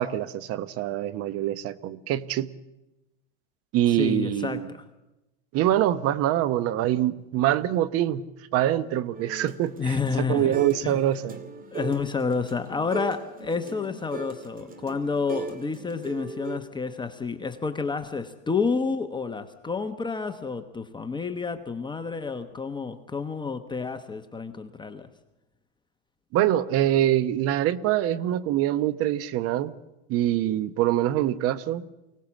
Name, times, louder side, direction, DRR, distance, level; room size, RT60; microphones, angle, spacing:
voice 1, 0.0-2.5 3.7-4.7 5.5-8.2 8.5-11.4 26.3-29.7 30.1-31.8, right 12 dB, 50° right, 16 dB, 0.9 m, -24 dB
voice 2, 3.9-4.8 9.8-11.0 11.7-25.1, left 5 dB, 15° left, 8 dB, 1.1 m, -30 dB
sound 1, 9.1-10.9 11.1-16.6, right 4 dB, 25° right, 2.3 m, -38 dB
24.0 x 18.0 x 7.3 m, 0.98 s
supercardioid pair, 120°, 32 cm